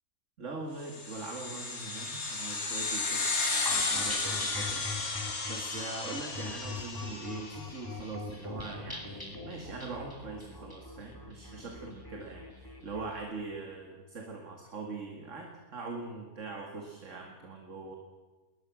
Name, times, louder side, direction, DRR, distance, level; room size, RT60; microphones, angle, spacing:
voice 1, 0.4-4.9 5.5-17.9, right 3 dB, 55° right, 2 dB, 2.4 m, -42 dB
sound 1, 0.9-7.7, left 3 dB, 70° left, 2.9 m, -33 dB
sound 2, 3.7-13.1, left 2 dB, 15° left, 2.7 m, -42 dB
21.0 x 20.0 x 6.3 m, 1.4 s
omnidirectional pair, 1.6 m